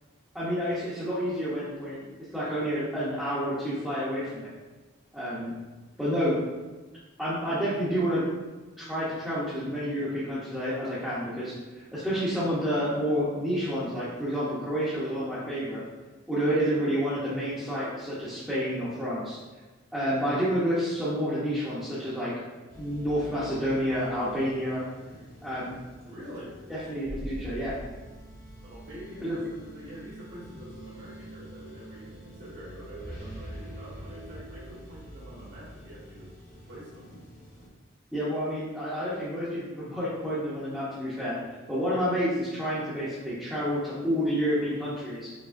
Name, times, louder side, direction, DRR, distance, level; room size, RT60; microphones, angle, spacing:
voice 1, 0.3-2.1 2.3-4.5 5.1-5.5 6.0-6.4 7.2-8.2 8.8-15.8 16.3-19.4 19.9-22.4 22.8-24.8 25.4-25.8 26.7-27.7 29.2-29.3 38.1-41.4 41.7-45.3, equal, 5° right, -12 dB, 0.7 m, -29 dB
sound 1, 22.7-37.7, equal, 50° left, 1.2 m, -45 dB
voice 2, 26.0-26.6 28.6-37.1, equal, 55° right, -11 dB, 1.4 m, -45 dB
4.9 x 3.0 x 2.5 m, 1.2 s
head